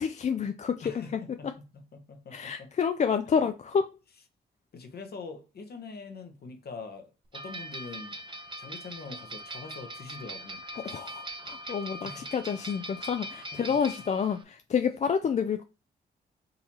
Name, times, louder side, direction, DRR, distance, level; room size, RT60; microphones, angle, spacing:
voice 1, 0.0-1.2 2.3-3.9 10.8-15.6, left 6 dB, 40° left, 0.4 m, -29 dB
voice 2, 0.8-2.7 4.7-8.2 8.6-10.6 12.0-12.3 13.5-13.8, left 4 dB, 55° left, 0.9 m, -44 dB
sound 1, 7.3-14.4, right 1 dB, 25° right, 0.6 m, -41 dB
3.9 x 2.8 x 2.9 m
supercardioid pair, 55°, 19 cm